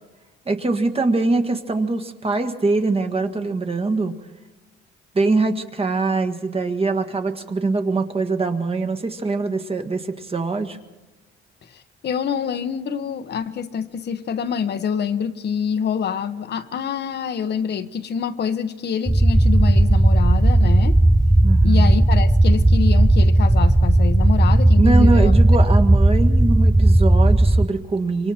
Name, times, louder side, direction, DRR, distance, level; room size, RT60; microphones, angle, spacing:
voice 1, 0.4-4.1 5.1-10.8 21.4-21.9 24.8-28.3, right 3 dB, 30° right, 1.7 m, -23 dB
voice 2, 11.7-21.0 21.6-25.3, left 7 dB, 55° left, 1.1 m, -26 dB
sound 1, 19.1-27.7, right 1 dB, 5° right, 0.6 m, -15 dB
26.0 x 24.5 x 4.4 m
cardioid pair, 90°, 20 cm